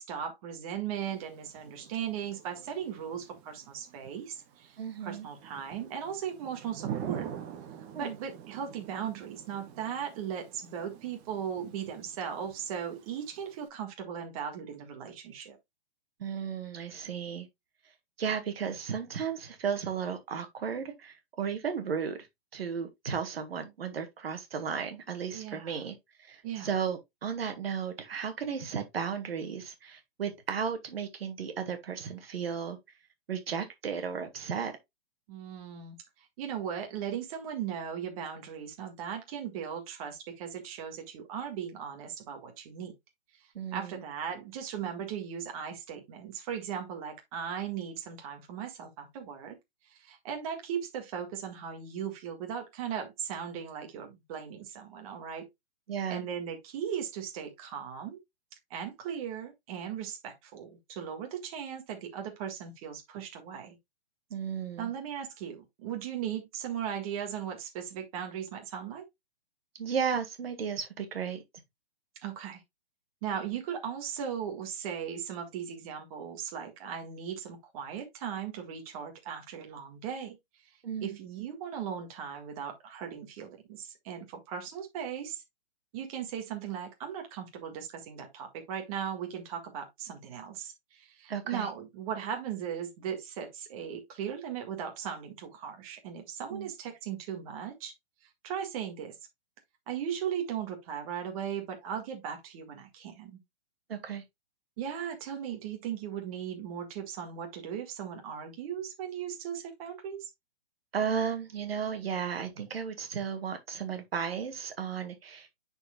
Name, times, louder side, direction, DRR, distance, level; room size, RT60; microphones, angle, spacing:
voice 1, 0.0-7.3 8.0-15.6 25.3-25.9 26.4-26.7 35.3-42.9 43.3-49.6 49.8-55.4 56.1-58.2 58.7-63.8 64.8-69.1 72.2-72.6 73.2-80.4 80.6-85.4 85.9-97.9 98.4-99.2 99.9-103.4 104.8-110.3, right 8 dB, 35° right, 1.8 m, -38 dB
Thunder / Rain, 0.9-13.7, right 10 dB, 15° right, 0.4 m, -45 dB
voice 2, 4.8-5.3 7.9-8.2 16.2-17.5 18.2-22.2 22.5-25.9 26.3-32.8 33.3-34.7 43.5-43.9 55.9-56.2 64.3-64.9 69.8-71.4 80.8-81.2 91.3-91.7 96.5-96.7 103.9-104.2 110.9-115.6, right 7 dB, 70° right, 1.7 m, -34 dB
9.7 x 4.6 x 2.3 m
hypercardioid pair, 150°, 31 cm